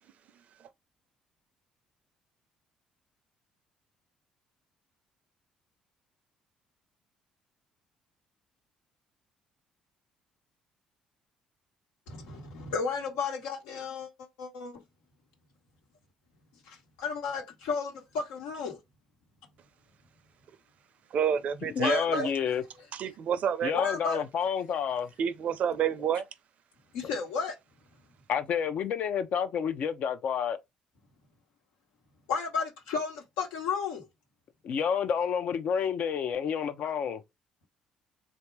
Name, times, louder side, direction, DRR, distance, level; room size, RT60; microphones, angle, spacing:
voice 1, 12.1-14.8 16.7-18.8 21.8-22.3 23.7-24.2 26.9-27.6 32.3-34.0, left 5 dB, 85° left, 1.3 m, -33 dB
voice 2, 21.1-22.3 22.9-23.8 25.2-26.3, right 8 dB, 60° right, 0.6 m, -29 dB
voice 3, 21.6-22.6 23.6-25.1 28.3-30.6 34.6-37.2, left 7 dB, 60° left, 0.7 m, -29 dB
3.5 x 2.7 x 4.6 m
hypercardioid pair, 60°, 3 cm